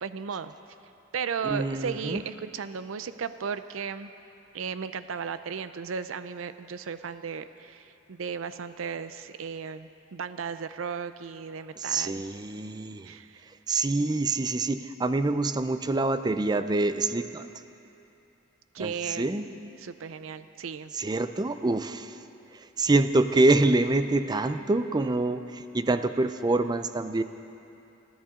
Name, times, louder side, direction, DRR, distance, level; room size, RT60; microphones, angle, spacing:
voice 1, 0.0-0.5 1.1-4.1 4.5-12.2 13.1-13.5 18.7-19.3 19.8-20.9, right 6 dB, 80° right, 12 dB, 0.5 m, -35 dB
voice 2, 1.4-2.2 11.8-13.1 13.7-17.5 18.8-19.5 20.9-22.2 22.8-27.2, right 2 dB, 20° right, 10 dB, 0.4 m, -26 dB
30.0 x 10.5 x 3.7 m, 2.8 s
head